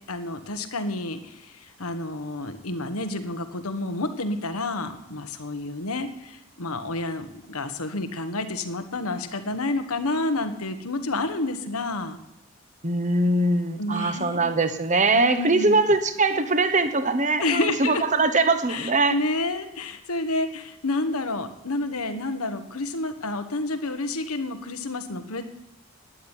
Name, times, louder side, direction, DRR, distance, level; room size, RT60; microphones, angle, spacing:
voice 1, 0.1-12.2 13.8-14.4 15.1-15.8 17.4-18.0 18.7-25.4, left 2 dB, 90° left, 8 dB, 1.5 m, -29 dB
voice 2, 12.8-19.1, right 3 dB, 35° right, 10 dB, 1.1 m, -22 dB
12.5 x 10.5 x 9.1 m, 0.84 s
head